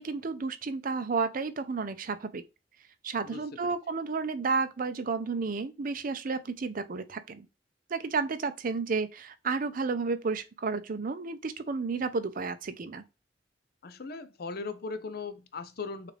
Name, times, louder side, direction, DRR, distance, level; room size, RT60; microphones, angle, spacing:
voice 1, 0.0-2.4 3.0-7.5 7.9-13.0, right 4 dB, 50° right, 0.5 m, -32 dB
voice 2, 3.2-3.7 13.8-16.1, left 4 dB, 55° left, 0.6 m, -39 dB
6.5 x 2.5 x 3.2 m
head